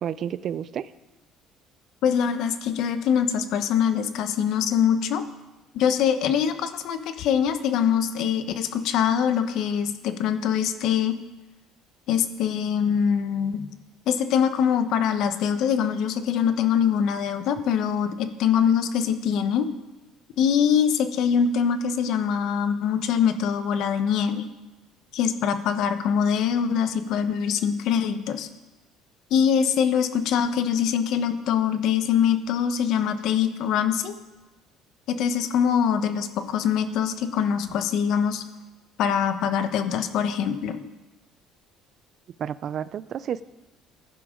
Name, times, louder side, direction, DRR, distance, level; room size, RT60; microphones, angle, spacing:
voice 1, 0.0-0.9 42.4-43.4, right 9 dB, 50° right, 17 dB, 0.4 m, -30 dB
voice 2, 2.0-5.2 5.7-11.2 12.1-13.7 14.1-19.7 20.4-24.5 25.1-28.5 29.3-34.1 35.1-38.4 39.0-40.8, left 8 dB, 70° left, 9 dB, 1.0 m, -23 dB
15.5 x 10.0 x 3.8 m, 1.1 s
supercardioid pair, 95°, 0 cm